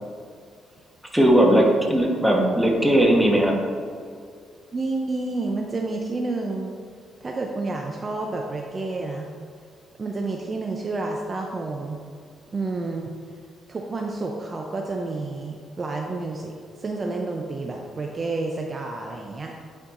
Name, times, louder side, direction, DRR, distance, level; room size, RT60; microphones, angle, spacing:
voice 1, 1.1-3.6, right 1 dB, 5° right, -1 dB, 1.2 m, -18 dB
voice 2, 4.7-6.7 7.2-9.3 10.0-12.0 12.5-13.1 13.7-19.5, right 3 dB, 35° right, 1 dB, 0.5 m, -29 dB
9.6 x 4.4 x 2.6 m, 2.2 s
cardioid pair, 90°, 0 cm